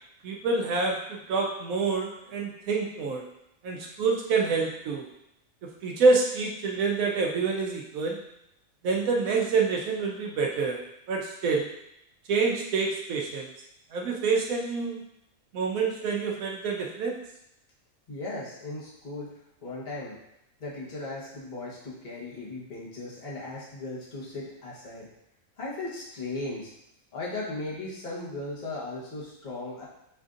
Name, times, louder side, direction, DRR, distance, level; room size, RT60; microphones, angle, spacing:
voice 1, 0.2-3.2 3.6-5.1 5.8-8.2 8.8-10.8 11.1-11.7 12.3-13.5 13.9-15.0 15.5-17.1, right 4 dB, 80° right, -1 dB, 1.0 m, -27 dB
voice 2, 18.1-19.3 19.6-20.2 20.6-25.1 25.6-26.7 27.1-29.8, left 2 dB, 35° left, -6 dB, 1.1 m, -37 dB
6.9 x 2.5 x 2.5 m, 0.83 s
omnidirectional pair, 1.4 m